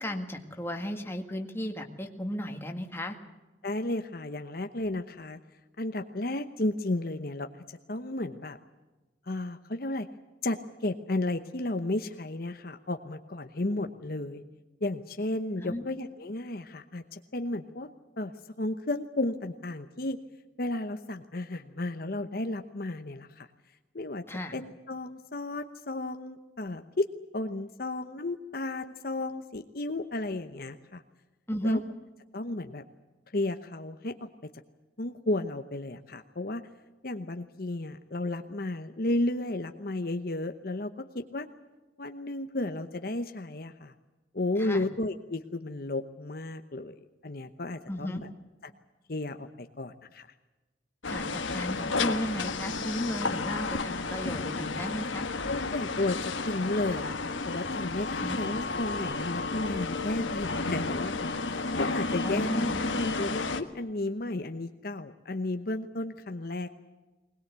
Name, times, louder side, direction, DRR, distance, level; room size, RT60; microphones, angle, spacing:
voice 1, 0.0-3.2 13.6-13.8 15.6-15.8 24.3-24.5 31.5-31.8 44.6-44.8 47.9-48.2 51.1-55.3 58.2-58.4 62.2-62.8, left 1 dB, 10° left, 3 dB, 1.8 m, -35 dB
voice 2, 3.6-5.4 5.8-8.6 9.3-10.1 10.4-14.4 14.8-17.9 18.2-20.2 20.6-23.5 23.9-24.2 24.5-27.1 27.3-31.0 31.6-31.8 32.3-32.8 33.3-34.3 35.0-36.6 37.0-41.5 42.0-43.9 44.3-46.9 47.2-48.3 48.6-48.7 49.1-50.3 55.5-61.4 61.8-66.8, left 2 dB, 50° left, 7 dB, 0.9 m, -33 dB
sound 1, 51.0-63.6, left 3 dB, 90° left, 1.6 m, -32 dB
21.0 x 20.5 x 8.2 m, 1.1 s
head